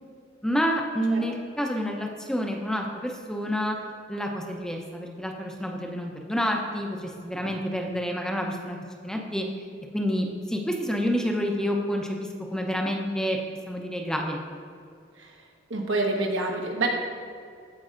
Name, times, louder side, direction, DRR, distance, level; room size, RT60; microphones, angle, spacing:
voice 1, 0.4-3.8 4.1-8.8 9.0-9.5 9.9-13.4 13.7-14.4, equal, 5° left, 1 dB, 0.6 m, -28 dB
voice 2, 15.7-16.9, right 2 dB, 85° right, 1 dB, 1.2 m, -27 dB
15.0 x 5.3 x 2.5 m, 2.3 s
head